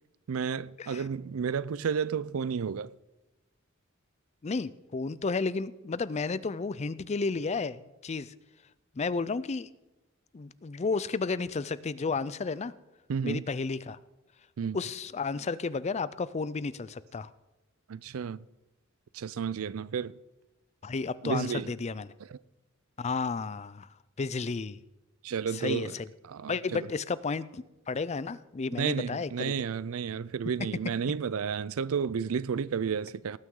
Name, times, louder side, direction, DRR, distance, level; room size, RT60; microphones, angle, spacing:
voice 1, 0.3-2.9 13.1-13.4 14.6-14.8 17.9-18.4 19.1-20.1 21.2-21.7 22.3-22.4 25.2-25.9 26.2-26.9 28.8-33.4, right 6 dB, 75° right, 0.4 m, -32 dB
voice 2, 4.4-8.3 9.0-9.7 10.3-12.7 13.2-14.0 14.7-17.3 20.8-22.1 23.0-23.9 24.2-24.8 25.5-26.1 26.5-29.5, left 4 dB, 30° left, 0.4 m, -32 dB
18.5 x 9.2 x 3.8 m
head